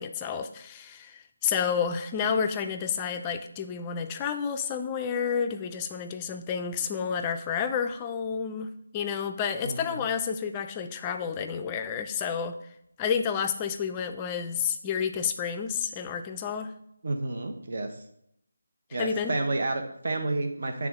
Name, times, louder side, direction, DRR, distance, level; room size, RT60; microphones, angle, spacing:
voice 1, 0.0-12.6 13.0-16.7 19.0-19.3, left 7 dB, 15° left, 6 dB, 0.4 m, -30 dB
voice 2, 9.6-10.0 17.0-17.9 18.9-20.9, right 2 dB, 55° right, 5 dB, 0.9 m, -30 dB
8.5 x 3.5 x 3.6 m, 0.74 s
figure-of-eight pair, 165°, 0 cm